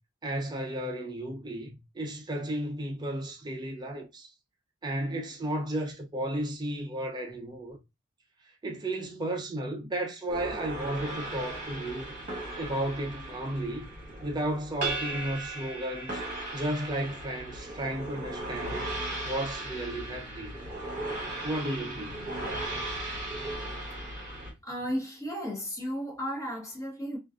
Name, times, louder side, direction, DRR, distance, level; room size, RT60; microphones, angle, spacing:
voice 1, 0.2-4.3 4.8-7.8 8.6-12.2 12.6-13.9 14.2-16.2 16.5-18.8 19.2-20.6 21.4-22.2, right 1 dB, 20° right, 0.4 m, -33 dB
sound 1, 10.3-24.5, right 1 dB, 35° right, 1.1 m, -37 dB
voice 2, 24.6-27.2, equal, 15° left, 0.7 m, -34 dB
2.5 x 2.2 x 2.3 m
head